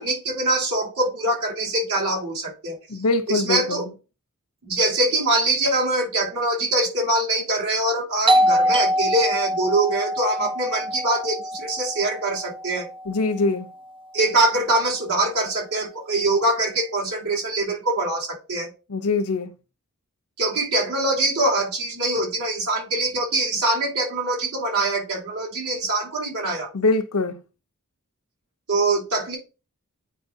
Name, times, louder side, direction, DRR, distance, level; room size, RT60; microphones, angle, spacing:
voice 1, 0.0-2.8 3.3-3.9 4.6-12.9 14.1-18.7 20.4-26.7 28.7-29.4, right 2 dB, 90° right, 3.2 m, -23 dB
voice 2, 2.9-3.9 13.0-13.7 18.9-19.5 26.7-27.4, left 3 dB, 80° left, 1.0 m, -23 dB
Doorbell, 8.3-13.7, equal, 25° right, 0.6 m, -24 dB
9.4 x 4.5 x 2.8 m
head